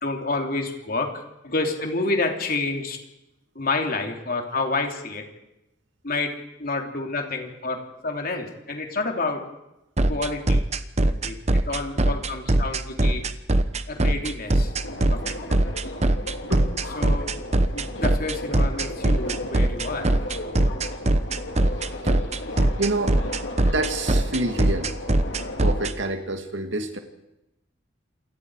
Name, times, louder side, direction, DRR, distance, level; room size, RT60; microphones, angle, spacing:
voice 1, 0.0-3.0 3.5-5.2 6.0-6.3 6.6-9.4 10.1-10.6 11.2-13.3 13.9-14.7 15.1-15.3 17.0-17.3 17.7-20.1, left 3 dB, 50° left, 3 dB, 3.2 m, -29 dB
sound 1, 10.0-25.9, right 1 dB, 35° right, 1.0 m, -21 dB
Subway metro underground, 14.5-25.9, left 1 dB, 70° left, 3.2 m, -36 dB
voice 2, 22.8-23.2 23.7-25.0 25.6-27.0, right 2 dB, 70° right, 6 dB, 2.3 m, -27 dB
28.0 x 22.0 x 4.9 m, 0.92 s
head